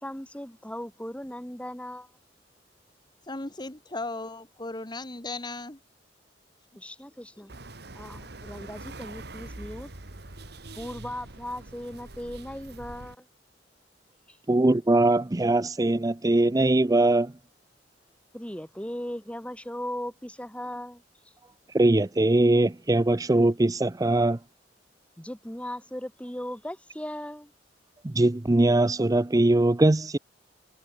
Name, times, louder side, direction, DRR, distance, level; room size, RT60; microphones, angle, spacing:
voice 1, 0.0-2.1 6.8-7.5 7.9-9.9 10.8-13.3 14.3-14.4 18.3-21.0 25.2-27.5, left 1 dB, 5° left, 3.4 m, -38 dB
voice 2, 3.2-5.8 7.4-7.5, left 2 dB, 25° left, 1.7 m, -36 dB
sound 1, 7.5-13.2, right 2 dB, 60° right, 2.2 m, -44 dB
voice 3, 14.5-17.3 21.7-24.4 28.0-30.2, right 2 dB, 20° right, 0.5 m, -21 dB
head